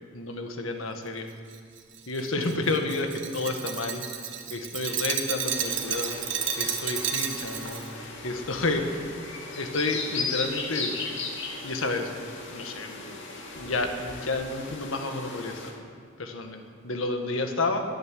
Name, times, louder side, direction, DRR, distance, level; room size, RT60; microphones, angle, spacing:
voice 1, 0.1-1.3 2.1-4.1 4.5-6.2 6.6-9.0 9.5-11.0 11.6-12.1 12.5-15.7 16.2-17.9, left 2 dB, 90° left, 4 dB, 1.8 m, -30 dB
Glass, 1.5-7.9, right 8 dB, 65° right, 1.4 m, -32 dB
sound 1, 5.4-15.7, left 4 dB, 65° left, 2.6 m, -37 dB
13.0 x 11.0 x 9.4 m, 2.2 s
head